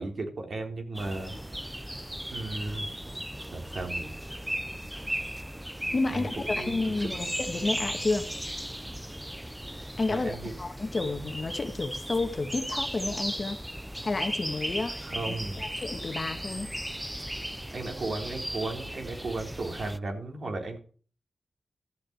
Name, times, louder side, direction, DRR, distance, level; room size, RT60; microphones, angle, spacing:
voice 1, 0.0-1.3 1.6-1.7 2.3-3.2 3.5-4.2 6.1-7.1 10.1-10.5 15.0-15.6 17.7-20.8, right 2 dB, 60° right, 3.8 m, -35 dB
sound 1, 0.9-20.0, equal, 5° right, 0.7 m, -36 dB
voice 2, 5.9-8.3 10.0-13.6 14.0-16.7, left 3 dB, 40° left, 1.8 m, -31 dB
14.0 x 6.5 x 8.8 m
wide cardioid pair, 105°, 0 cm